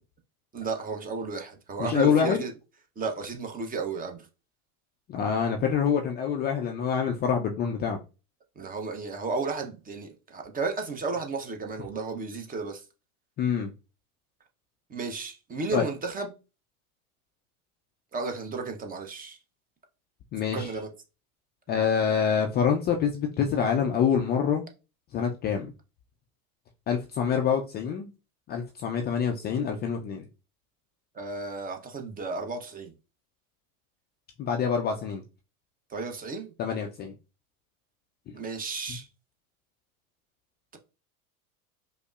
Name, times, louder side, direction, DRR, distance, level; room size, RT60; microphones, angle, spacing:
voice 1, 0.5-2.5 3.0-4.3 8.6-12.8 14.9-16.3 18.1-19.4 20.5-20.9 31.1-32.9 35.9-36.5 38.3-39.1, right 4 dB, 20° right, 0.7 m, -33 dB
voice 2, 1.8-2.4 5.1-8.0 13.4-13.7 15.7-15.9 20.3-20.7 21.7-24.6 25.1-25.7 26.9-28.1 28.5-30.2 34.4-35.2 36.6-37.1, left 7 dB, 25° left, 0.4 m, -26 dB
5.1 x 2.0 x 2.3 m
hypercardioid pair, 85°, 44 cm